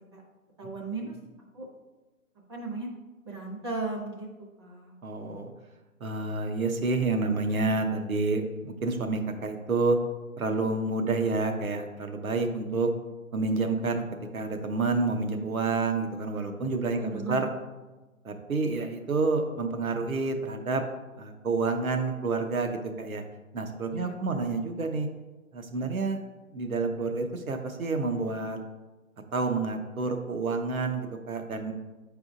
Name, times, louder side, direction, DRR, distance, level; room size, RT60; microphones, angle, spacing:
voice 1, 0.6-1.2 1.5-1.7 2.5-2.9 3.2-4.9 17.0-17.4 23.9-24.4 25.7-25.9, right 3 dB, 20° right, -2 dB, 0.7 m, -36 dB
voice 2, 5.0-5.5 6.0-10.0 10.4-12.9 13.3-14.0 14.3-17.5 18.2-20.8 21.1-23.2 23.5-25.1 25.5-26.2 26.5-28.6 29.3-31.7, right 3 dB, 75° right, 5 dB, 1.1 m, -29 dB
8.4 x 4.8 x 2.6 m, 1.2 s
figure-of-eight pair, 145°, 42 cm